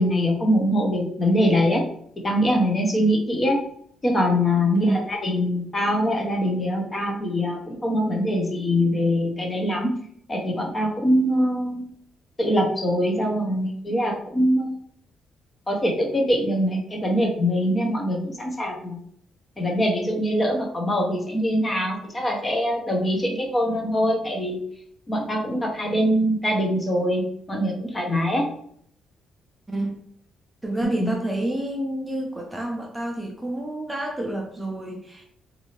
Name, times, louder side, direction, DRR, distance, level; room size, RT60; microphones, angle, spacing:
voice 1, 0.0-1.8 2.2-3.6 4.0-9.9 10.3-11.8 12.4-14.7 15.7-19.0 19.6-24.6 25.1-28.4 31.0-31.1, equal, 25° left, 0 dB, 0.8 m, -23 dB
voice 2, 4.7-5.1 29.7-30.0 30.6-35.3, right 1 dB, 10° right, 0 dB, 0.5 m, -29 dB
2.7 x 2.6 x 2.9 m, 0.65 s
cardioid pair, 90°, 0 cm